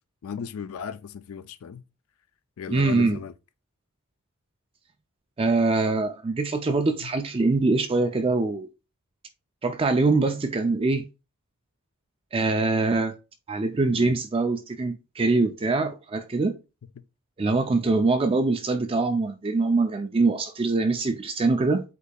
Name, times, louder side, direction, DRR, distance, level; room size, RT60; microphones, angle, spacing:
voice 1, 0.2-1.8 2.6-3.3 7.0-7.1 13.8-14.2, left 7 dB, 70° left, 0.4 m, -36 dB
voice 2, 2.7-3.2 5.4-8.7 9.6-11.0 12.3-13.1 13.5-16.6 17.4-21.8, right 3 dB, 25° right, 0.4 m, -23 dB
8.1 x 2.8 x 2.3 m
head